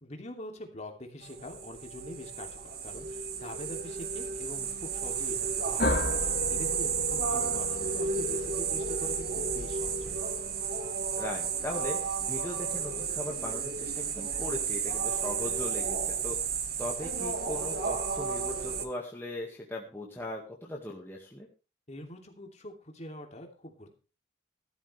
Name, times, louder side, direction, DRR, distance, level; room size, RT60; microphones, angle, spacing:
voice 1, 0.0-10.2 21.9-23.9, left 1 dB, 35° left, 3 dB, 2.8 m, -44 dB
sound 1, 1.2-18.8, right 6 dB, 50° right, 1.7 m, -32 dB
sound 2, 5.8-10.5, left 1 dB, 55° left, 2.9 m, -35 dB
voice 2, 11.2-21.5, left 1 dB, 10° left, -2 dB, 1.9 m, -39 dB
15.5 x 12.5 x 3.4 m, 0.33 s
head